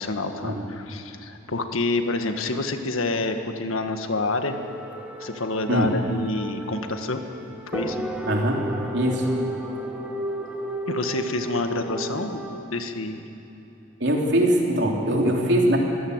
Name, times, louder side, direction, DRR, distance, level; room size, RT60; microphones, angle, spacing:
voice 1, 0.0-4.6 5.2-7.2 7.7-8.0 10.9-13.2, left 2 dB, 85° left, 6 dB, 1.6 m, -28 dB
sound 1, 4.4-12.6, right 1 dB, 5° right, 1.5 m, -34 dB
voice 2, 8.3-8.6 8.9-9.3 14.0-15.8, right 1 dB, 55° right, 0 dB, 3.3 m, -22 dB
24.0 x 16.0 x 8.0 m, 3.0 s
head